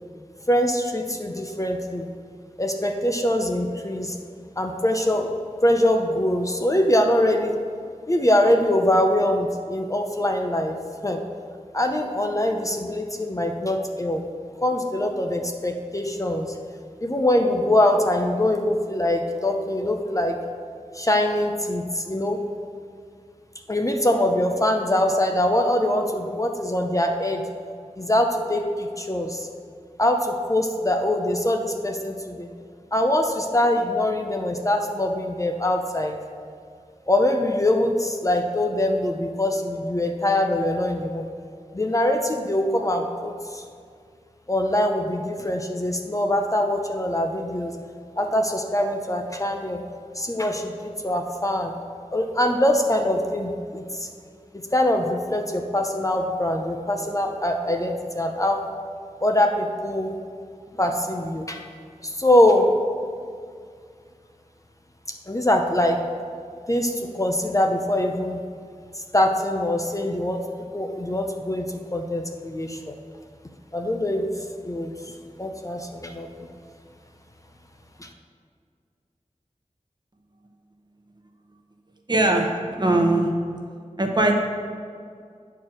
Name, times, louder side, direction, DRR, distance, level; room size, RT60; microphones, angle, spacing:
voice 1, 0.5-2.1 2.6-4.2 4.6-5.3 5.6-7.5 8.1-10.8 11.0-11.2 11.7-14.2 14.6-16.5 17.0-20.4 20.9-22.4 23.7-27.4 28.0-29.5 30.0-32.5 32.9-36.2 37.1-41.3 41.7-43.6 44.5-47.7 48.2-49.8 50.1-51.7 52.1-54.1 54.7-58.6 59.2-60.1 60.8-61.6 62.0-62.7 65.3-66.0 66.7-68.4 68.9-70.4 70.7-71.7 71.9-72.9 73.7-74.3 74.6-74.9 75.4-76.5 78.0-78.1, left 1 dB, 25° left, 3 dB, 0.6 m, -23 dB
voice 2, 82.1-83.3 84.0-84.3, right 2 dB, 35° right, 2 dB, 1.0 m, -20 dB
9.1 x 4.6 x 6.4 m, 2.2 s
wide cardioid pair, 70°, 13 cm